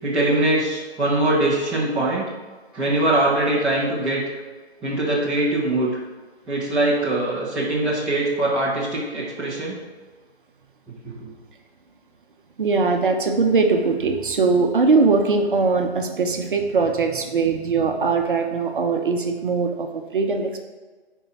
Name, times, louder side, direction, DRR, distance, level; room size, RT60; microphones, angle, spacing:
voice 1, 0.0-2.3 2.7-4.2 4.8-6.0 6.5-9.8 11.0-11.3, right 1 dB, 5° right, -9 dB, 0.9 m, -22 dB
voice 2, 12.6-20.6, right 4 dB, 50° right, 4 dB, 0.9 m, -21 dB
10.0 x 4.6 x 4.5 m, 1.3 s
figure-of-eight pair, 150°, 33 cm